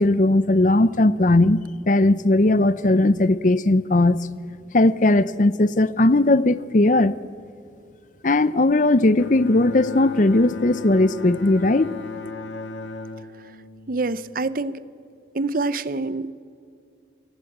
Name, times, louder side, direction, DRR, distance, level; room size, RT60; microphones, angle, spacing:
voice 1, 0.0-1.6 1.9-4.2 4.7-7.1 8.2-12.0, left 2 dB, 40° left, 0.6 m, -18 dB
Bowed string instrument, 9.2-14.6, left 3 dB, 85° left, 1.5 m, -36 dB
voice 2, 13.9-14.8 15.3-16.3, right 3 dB, 50° right, 0.7 m, -26 dB
29.0 x 16.5 x 8.0 m
head